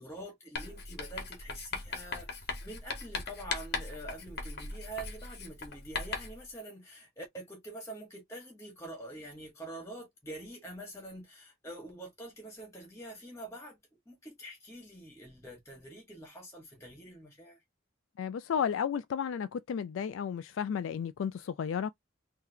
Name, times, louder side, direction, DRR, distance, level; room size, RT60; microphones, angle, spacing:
voice 1, 0.0-13.8 14.1-17.6, right 1 dB, 15° left, 1.4 m, -46 dB
Writing, 0.6-6.4, left 4 dB, 55° left, 1.0 m, -39 dB
voice 2, 18.2-21.9, left 7 dB, 75° left, 0.3 m, -33 dB
3.9 x 2.8 x 2.7 m
head